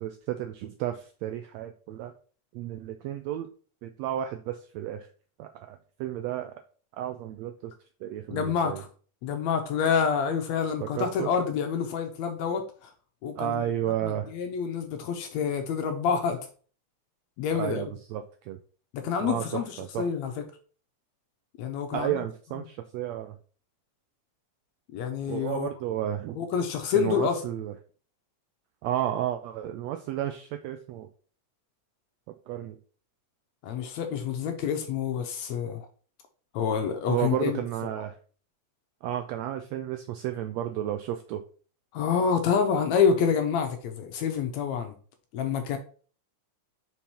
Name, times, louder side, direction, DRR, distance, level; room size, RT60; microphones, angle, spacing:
voice 1, 0.0-2.1 2.5-3.5 3.8-5.1 5.4-6.5 7.0-7.7 8.0-8.8 10.8-11.3 13.4-14.3 17.6-18.6 19.2-20.1 21.9-23.4 25.3-26.4 26.9-27.7 28.8-31.1 32.5-32.8 37.1-38.2 39.0-41.4, right 11 dB, 85° right, 1.5 m, -32 dB
voice 2, 8.3-8.9 9.2-12.9 13.2-13.7 14.0-16.4 17.4-17.9 18.9-20.4 21.6-22.2 24.9-25.7 26.4-27.4 33.6-35.9 36.5-37.6 41.9-44.9 45.3-45.8, left 6 dB, 75° left, 1.8 m, -27 dB
5.3 x 4.6 x 4.3 m
omnidirectional pair, 3.6 m